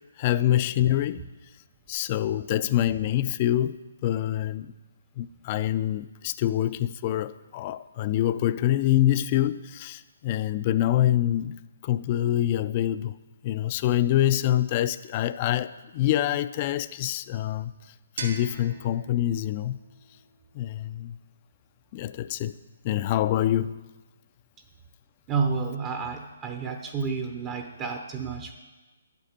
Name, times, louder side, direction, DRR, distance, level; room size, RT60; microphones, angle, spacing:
voice 1, 0.2-1.2 1.9-4.7 5.2-13.2 13.4-17.7 18.2-19.8 20.5-21.2 21.9-22.5 22.8-23.8, left 12 dB, 35° left, 0.4 m, -25 dB
sound 1, 18.2-21.0, right 3 dB, 65° right, 1.5 m, -42 dB
voice 2, 25.3-28.5, right 5 dB, 25° right, 0.7 m, -30 dB
10.5 x 8.1 x 4.3 m
hypercardioid pair, 140°, 0 cm